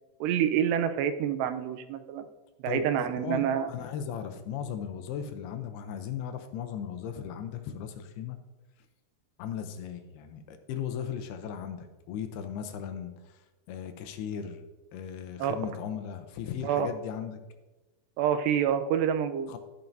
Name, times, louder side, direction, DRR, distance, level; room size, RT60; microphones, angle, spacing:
voice 1, 0.2-2.3 2.6-3.7 15.4-15.5 16.6-16.9 18.2-19.5, right 9 dB, 85° right, 9 dB, 2.8 m, -27 dB
voice 2, 2.7-8.4 9.4-14.6 14.9-17.4 19.5-19.6, left 8 dB, 80° left, 8 dB, 2.6 m, -37 dB
12.5 x 8.9 x 2.6 m, 1.1 s
omnidirectional pair, 4.7 m